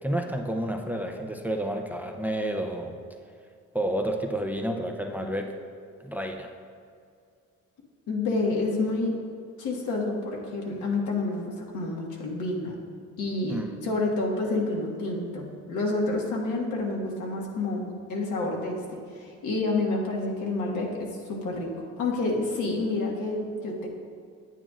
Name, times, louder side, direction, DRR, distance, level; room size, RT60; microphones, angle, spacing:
voice 1, 0.0-3.0 3.7-5.5 6.0-6.5 13.5-13.7, right 1 dB, 5° right, 3 dB, 0.6 m, -30 dB
voice 2, 8.1-9.1 9.6-12.8 13.2-23.9, left 2 dB, 80° left, -2 dB, 1.6 m, -29 dB
9.1 x 9.1 x 2.5 m, 2.3 s
cardioid pair, 90°, 30 cm